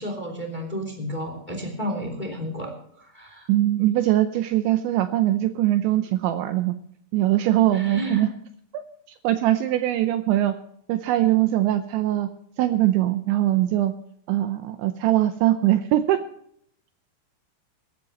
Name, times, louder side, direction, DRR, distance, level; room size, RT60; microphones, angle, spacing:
voice 1, 0.0-3.5 7.7-8.2, equal, 15° left, 3 dB, 2.0 m, -32 dB
voice 2, 3.5-6.7 7.1-8.3 8.7-8.8 9.2-10.5 10.9-12.3 12.6-13.9 14.3-16.2, right 14 dB, 80° right, 8 dB, 2.7 m, -21 dB
22.5 x 12.5 x 3.0 m, 0.68 s
omnidirectional pair, 5.8 m